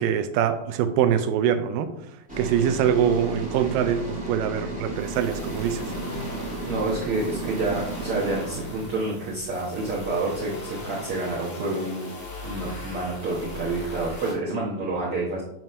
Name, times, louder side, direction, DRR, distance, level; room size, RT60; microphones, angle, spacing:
voice 1, 0.0-1.9 2.4-5.8, right 9 dB, 80° right, 10 dB, 2.2 m, -24 dB
sound 1, 2.3-10.3, right 2 dB, 5° right, 1.1 m, -34 dB
sound 2, 4.9-14.3, left 1 dB, 15° left, 1.8 m, -39 dB
voice 2, 6.7-12.1 12.4-15.4, right 2 dB, 60° right, -5 dB, 1.5 m, -28 dB
9.0 x 3.1 x 5.5 m, 0.84 s
omnidirectional pair, 4.0 m